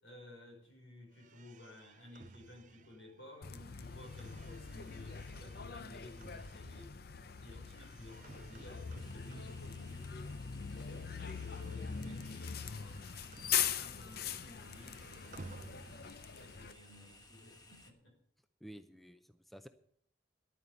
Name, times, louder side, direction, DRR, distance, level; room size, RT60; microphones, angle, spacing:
voice 1, 0.0-7.0 7.4-10.1 10.6-13.0 13.4-15.8 16.3-18.1, left 1 dB, 80° left, 1 dB, 5.8 m, -55 dB
sound 1, 1.1-10.4 10.7-14.1 14.4-16.3, right 3 dB, 45° right, 0.6 m, -57 dB
Bus, 3.4-16.7, left 8 dB, 55° left, 0.6 m, -41 dB
sound 2, 9.0-17.9, left 2 dB, 20° left, 1.3 m, -59 dB
voice 2, 18.6-19.7, right 1 dB, ahead, 9 dB, 0.5 m, -52 dB
11.5 x 9.2 x 7.0 m, 0.66 s
head